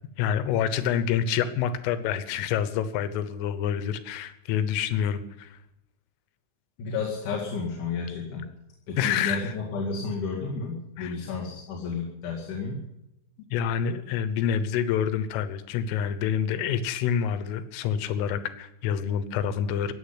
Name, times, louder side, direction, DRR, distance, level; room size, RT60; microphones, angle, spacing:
voice 1, 0.2-5.6 9.0-9.5 11.0-11.2 13.5-19.9, left 8 dB, 90° left, 12 dB, 3.7 m, -27 dB
voice 2, 6.8-8.5 8.9-12.8, left 4 dB, 50° left, -3 dB, 3.0 m, -32 dB
15.5 x 9.0 x 9.9 m, 0.89 s
omnidirectional pair, 5.6 m